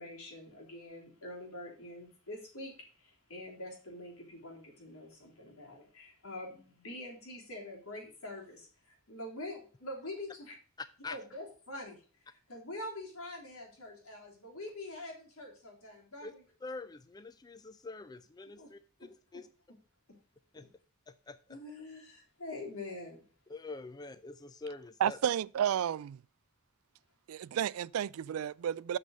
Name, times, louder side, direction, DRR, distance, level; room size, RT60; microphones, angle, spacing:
voice 1, 0.0-10.5 11.1-12.0 12.3-16.4 18.6-18.7 19.0-19.1 20.5-20.7 21.5-23.2, left 1 dB, 85° left, 3.5 m, -45 dB
voice 2, 16.6-19.5 20.5-20.7 21.1-21.6 23.5-25.2, left 3 dB, 20° left, 0.4 m, -45 dB
voice 3, 25.0-26.2 27.3-29.0, right 9 dB, 75° right, 0.3 m, -32 dB
6.9 x 6.4 x 6.4 m
head